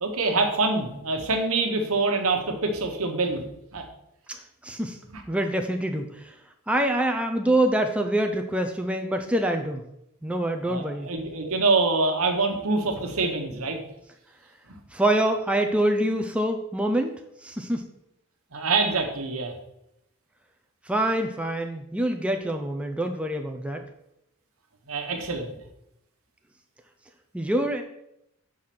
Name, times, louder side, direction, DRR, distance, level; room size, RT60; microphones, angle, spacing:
voice 1, 0.0-3.4 3.7-3.8 5.1-5.2 10.6-13.8 18.5-19.5 24.9-25.5, right 3 dB, 85° right, 3 dB, 1.2 m, -25 dB
voice 2, 4.3-5.0 5.3-6.3 6.7-9.8 10.2-11.1 14.9-17.1 17.4-17.8 20.9-23.8 27.3-27.8, right 1 dB, 5° right, 4 dB, 0.4 m, -25 dB
5.6 x 4.9 x 5.9 m, 0.82 s
head